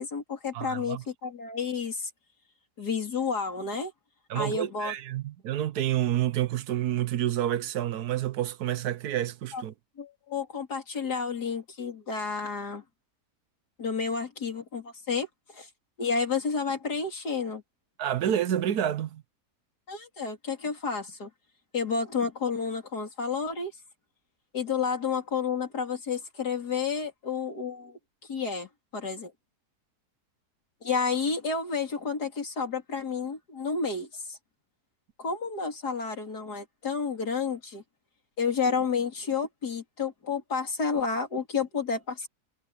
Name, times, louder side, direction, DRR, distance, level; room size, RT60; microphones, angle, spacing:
voice 1, 0.0-2.1 2.8-3.9 4.4-4.9 9.5-9.6 10.0-12.8 13.8-15.3 15.5-15.7 16.0-17.6 19.9-21.3 21.7-23.7 24.5-28.0 28.3-29.3 30.8-34.4 35.2-37.8 38.4-42.3, left 5 dB, 80° left, 3.9 m, -30 dB
voice 2, 0.5-1.0 4.3-9.7 18.0-19.2, right 11 dB, 75° right, 1.3 m, -29 dB
omnidirectional pair, 1.7 m